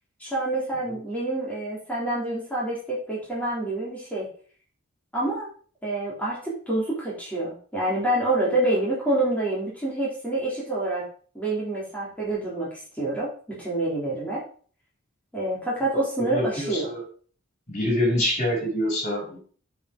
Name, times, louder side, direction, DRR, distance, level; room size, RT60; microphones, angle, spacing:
voice 1, 0.2-4.3 5.1-5.5 5.8-11.0 11.3-14.4 15.3-16.9, right 2 dB, 5° left, -7 dB, 3.6 m, -27 dB
voice 2, 16.3-17.0 17.7-19.4, left 1 dB, 35° left, -2 dB, 4.8 m, -26 dB
9.0 x 5.2 x 5.0 m, 0.43 s
head